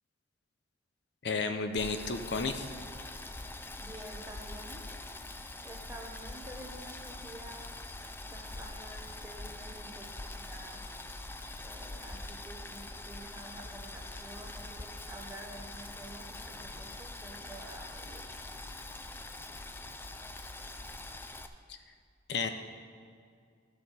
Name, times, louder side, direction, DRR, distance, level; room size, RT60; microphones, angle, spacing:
voice 1, 1.2-2.7 21.7-21.8 22.3-22.5, left 4 dB, 65° left, 8 dB, 0.6 m, -32 dB
Boiling, 1.8-21.5, left 2 dB, 10° left, 0.4 m, -44 dB
voice 2, 3.8-4.8 5.6-7.6 8.3-10.8 11.6-18.3, right 1 dB, 15° right, -1 dB, 1.2 m, -49 dB
14.0 x 6.7 x 4.2 m, 2.2 s
head